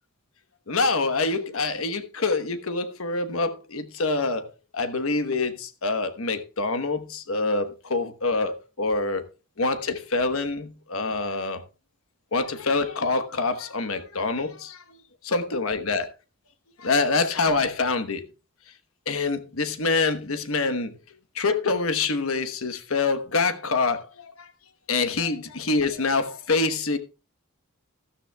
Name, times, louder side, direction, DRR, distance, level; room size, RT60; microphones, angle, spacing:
voice 1, 0.7-9.2 9.6-11.6 12.3-15.0 15.2-16.1 16.8-18.2 19.1-20.9 21.3-24.5 24.9-27.0, left 3 dB, 85° left, 1.2 m, -26 dB
13.0 x 12.5 x 2.3 m
head